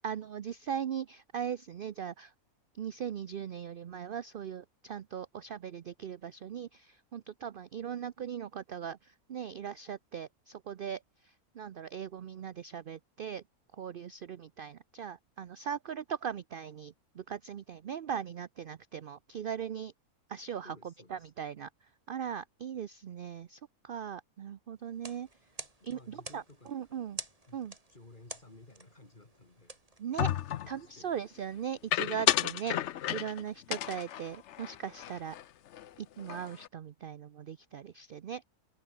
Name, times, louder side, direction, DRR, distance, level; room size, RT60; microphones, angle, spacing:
voice 1, 0.0-2.3 2.7-13.4 13.7-19.9 20.3-21.7 22.1-25.3 25.8-27.2 27.5-27.7 30.0-30.3 30.7-32.8 33.1-35.4 36.0-38.4, right 8 dB, 55° right, 0.6 m, -39 dB
voice 2, 20.6-21.3 25.8-27.0 27.5-27.6 27.9-29.8 30.5-31.1 32.6-32.8, left 2 dB, 30° left, 3.3 m, -56 dB
sound 1, 24.9-30.7, right 2 dB, 25° right, 2.7 m, -49 dB
sound 2, 30.2-30.8 31.9-33.4 33.7-35.4 35.7-35.9 36.2-36.7, left 11 dB, 60° left, 0.8 m, -32 dB
omnidirectional pair, 1.6 m